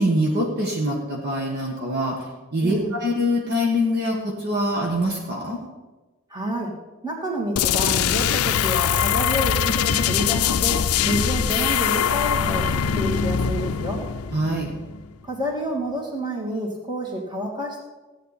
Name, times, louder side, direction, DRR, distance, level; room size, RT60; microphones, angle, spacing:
voice 1, 0.0-2.1 2.5-5.6 14.3-14.7, equal, 50° right, -1 dB, 1.6 m, -24 dB
voice 2, 2.6-3.0 6.3-6.7 7.0-10.8 11.0-12.7 13.0-14.0 15.2-17.8, equal, 20° right, -2 dB, 2.6 m, -28 dB
sound 1, 7.6-15.1, left 8 dB, 85° left, 0.5 m, -22 dB
15.0 x 8.9 x 4.2 m, 1.2 s
head